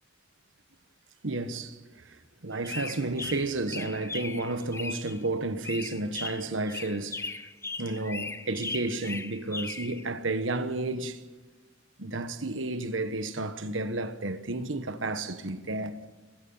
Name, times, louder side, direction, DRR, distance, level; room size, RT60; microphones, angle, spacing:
voice 1, 1.2-2.2 2.4-7.3 7.8-11.2 12.0-16.1, right 2 dB, 75° right, 1.3 m, -32 dB
sound 1, 2.5-5.3 5.6-10.1, left 3 dB, 15° left, 0.6 m, -38 dB
30.0 x 15.5 x 5.7 m
head